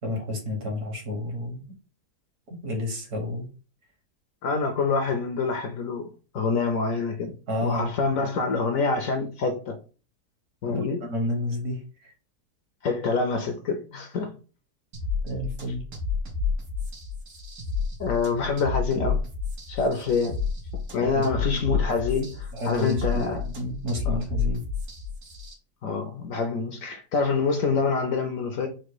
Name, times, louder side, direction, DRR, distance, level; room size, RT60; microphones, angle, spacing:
voice 1, 0.0-1.6 2.5-3.5 7.5-7.9 10.6-12.1 15.2-15.8 21.0-21.3 21.5-21.9 22.5-24.6, left 1 dB, 65° right, 2.0 m, -31 dB
voice 2, 4.4-7.4 7.6-9.8 10.6-11.0 12.8-14.3 18.0-19.2 19.7-20.4 20.9-23.4 24.1-24.2 25.8-28.7, left 4 dB, 65° left, 0.9 m, -26 dB
sound 1, 14.9-25.5, left 5 dB, 90° right, 1.9 m, -30 dB
4.5 x 2.2 x 4.6 m
omnidirectional pair, 1.8 m